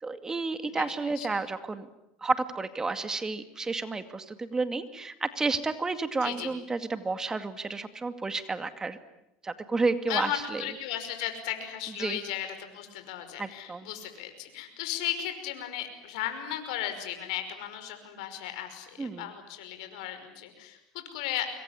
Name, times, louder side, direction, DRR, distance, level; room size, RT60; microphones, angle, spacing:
voice 1, 0.0-1.9 2.2-9.0 9.4-10.6 12.0-12.2 13.4-13.9 19.0-19.3, right 3 dB, 15° right, 10 dB, 2.2 m, -31 dB
voice 2, 6.2-6.5 10.1-21.5, left 11 dB, 80° left, 7 dB, 5.5 m, -35 dB
25.5 x 23.0 x 9.9 m, 0.83 s
supercardioid pair, 115°, 3 cm